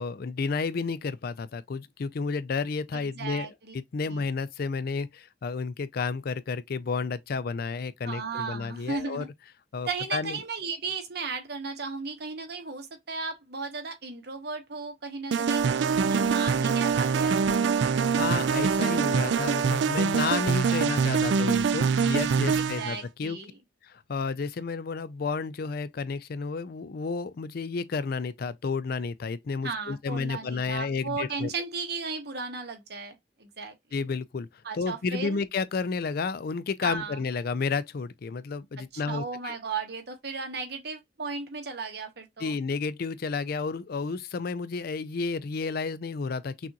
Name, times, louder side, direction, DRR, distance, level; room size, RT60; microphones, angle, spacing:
voice 1, 0.0-3.5 3.7-9.2 9.7-10.4 18.2-23.4 23.8-31.5 33.9-34.5 34.7-39.6 42.4-46.7, left 4 dB, 60° left, 0.4 m, -31 dB
voice 2, 2.9-3.7 4.1-4.2 8.0-9.3 9.8-17.4 20.6-21.6 21.8-23.6 29.6-33.7 34.6-35.4 36.8-37.2 38.9-42.6, right 4 dB, 65° right, 1.2 m, -36 dB
sound 1, 15.3-22.9, right 6 dB, 85° right, 0.4 m, -24 dB
6.0 x 2.5 x 2.8 m
head